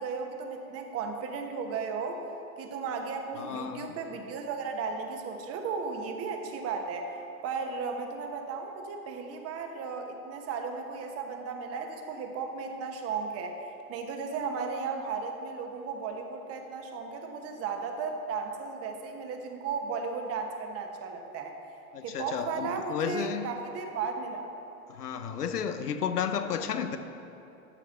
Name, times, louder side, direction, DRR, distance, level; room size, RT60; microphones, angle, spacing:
voice 1, 0.0-2.2 2.6-7.1 7.4-13.6 13.9-21.5 22.0-24.5, right 5 dB, 30° right, 4 dB, 1.1 m, -35 dB
voice 2, 3.4-4.0 21.9-23.5 24.9-27.0, left 7 dB, 85° left, 9 dB, 0.8 m, -32 dB
12.5 x 4.8 x 5.7 m, 2.8 s
hypercardioid pair, 105°, 45 cm